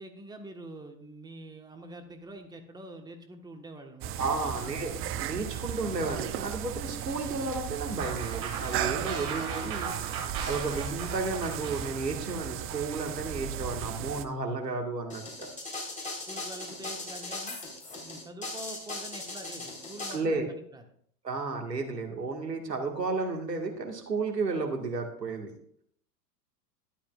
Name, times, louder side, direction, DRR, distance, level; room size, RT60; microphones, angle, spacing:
voice 1, 0.0-4.5 16.3-17.6 17.9-20.8, right 1 dB, 10° right, 5 dB, 1.4 m, -45 dB
sound 1, 4.0-14.2, right 10 dB, 30° right, 0.7 m, -36 dB
voice 2, 4.2-9.9 10.4-15.5 20.1-20.5 21.2-25.5, right 3 dB, 90° right, 3 dB, 2.0 m, -33 dB
sound 2, 8.0-13.1, right 6 dB, 45° right, 4.0 m, -38 dB
sound 3, 15.1-20.1, left 2 dB, 15° left, 4.1 m, -38 dB
13.0 x 11.5 x 2.5 m, 0.63 s
figure-of-eight pair, 90°, 48 cm